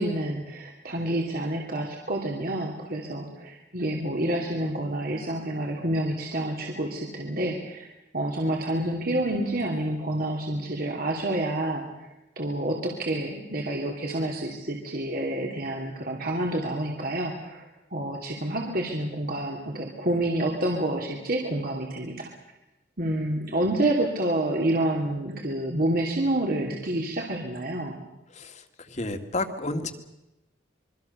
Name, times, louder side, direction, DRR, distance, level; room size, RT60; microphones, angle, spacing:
voice 1, 0.0-7.9 8.1-12.1 12.4-17.6 17.9-22.3 23.0-27.9, right 1 dB, 55° right, 0 dB, 3.0 m, -28 dB
voice 2, 28.3-29.9, left 2 dB, 40° left, 8 dB, 2.0 m, -31 dB
26.5 x 23.0 x 6.9 m, 0.94 s
head